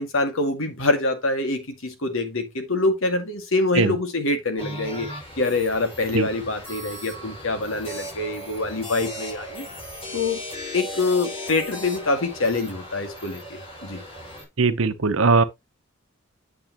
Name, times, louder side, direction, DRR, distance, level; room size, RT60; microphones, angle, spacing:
voice 1, 0.0-5.1 5.4-9.7 10.1-10.4 10.7-14.0, left 2 dB, 75° left, 2.1 m, -25 dB
sound 1, 4.6-14.4, left 1 dB, 30° left, 5.0 m, -37 dB
voice 2, 14.6-15.4, right 4 dB, 75° right, 0.9 m, -19 dB
8.9 x 6.9 x 3.0 m
head